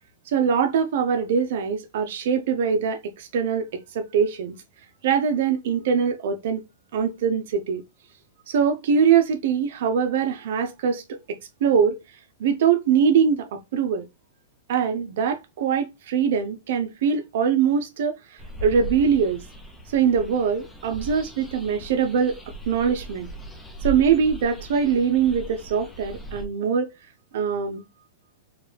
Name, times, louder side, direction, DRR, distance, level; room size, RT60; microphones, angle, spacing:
voice 1, 0.3-4.5 5.0-6.6 6.9-7.8 8.5-11.0 11.3-12.0 12.4-14.0 14.7-18.1 18.6-19.4 19.9-22.4 22.7-23.3 23.8-26.9 27.3-27.8, right 7 dB, 60° right, 0.6 m, -22 dB
sound 1, 18.4-26.5, right 2 dB, 5° left, 0.6 m, -38 dB
4.6 x 2.3 x 3.2 m
supercardioid pair, 160°, 0 cm